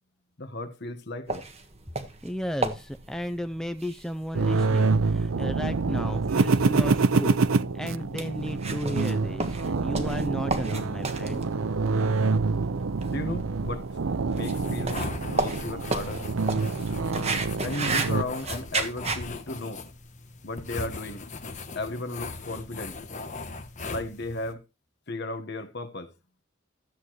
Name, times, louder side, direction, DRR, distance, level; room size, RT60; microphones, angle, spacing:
voice 1, 0.4-1.5 13.1-14.0 14.3-16.2 17.6-19.8 20.4-21.3 21.7-23.0 23.9-24.6 25.1-26.1, left 2 dB, 55° left, 1.3 m, -35 dB
sound 1, 1.3-19.2, right 3 dB, 30° right, 1.4 m, -34 dB
voice 2, 2.2-11.4, equal, 5° left, 0.5 m, -34 dB
sound 2, 4.3-18.2, right 4 dB, 80° right, 0.6 m, -26 dB
sound 3, 14.4-24.5, left 3 dB, 35° left, 1.2 m, -39 dB
13.5 x 8.3 x 3.1 m
head